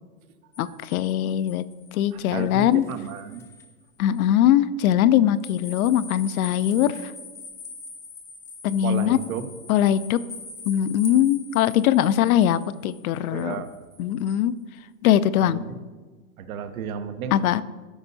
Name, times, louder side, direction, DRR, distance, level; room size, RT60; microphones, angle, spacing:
sound 1, 0.5-3.7 4.1-4.2 5.4-14.4, left 3 dB, 5° left, 0.4 m, -43 dB
voice 1, 0.6-1.6 1.9-2.8 4.0-7.1 8.6-9.2 9.7-10.2 10.7-13.6 14.0-14.5 15.0-15.6 17.3-17.6, left 11 dB, 80° left, 15 dB, 0.5 m, -21 dB
voice 2, 2.1-3.5 8.8-9.5 13.3-13.8 15.4-15.8 16.4-17.4, right 7 dB, 75° right, 9 dB, 0.9 m, -33 dB
13.5 x 5.4 x 2.7 m, 1.4 s
hypercardioid pair, 120°, 42 cm